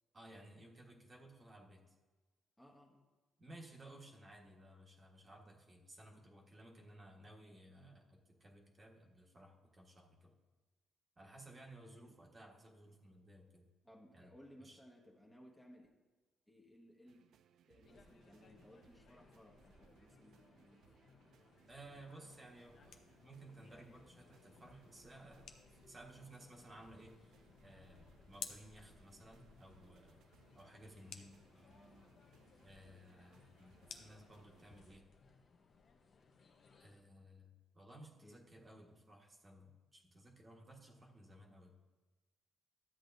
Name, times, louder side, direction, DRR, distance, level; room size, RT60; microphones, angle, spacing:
voice 1, 0.1-1.9 3.4-10.3 11.2-13.7 14.1-14.3 14.6-14.8 21.7-27.3 27.6-30.2 30.5-31.4 32.6-35.1 36.8-41.8, right 1 dB, 30° right, 0 dB, 1.4 m, -58 dB
voice 2, 2.6-3.1 11.8-12.2 13.8-15.9 16.5-17.2 17.7-20.8 31.5-32.2 38.2-38.4, equal, 10° left, -1 dB, 1.3 m, -61 dB
sound 1, 17.0-35.0, right 9 dB, 75° right, 0.3 m, -70 dB
sound 2, 17.8-37.0, left 3 dB, 50° left, 0.9 m, -66 dB
sound 3, 22.4-34.8, left 7 dB, 75° left, 0.7 m, -58 dB
12.5 x 8.0 x 2.6 m, 1.3 s
cardioid pair, 90°, 0 cm